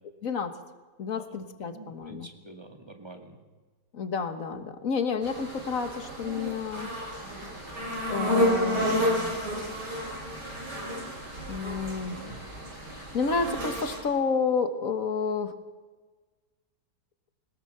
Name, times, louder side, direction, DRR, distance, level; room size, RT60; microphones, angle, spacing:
voice 1, 0.2-0.5 1.0-2.3 3.9-6.9 8.1-9.3 11.5-12.2 12.9-15.5, left 5 dB, 45° left, 8 dB, 1.6 m, -30 dB
voice 2, 1.6-3.4 12.1-12.4, right 2 dB, 15° right, 4 dB, 2.0 m, -46 dB
sound 1, 5.2-14.0, equal, 55° right, 6.7 m, -31 dB
20.5 x 20.0 x 6.8 m, 1.4 s
omnidirectional pair, 2.2 m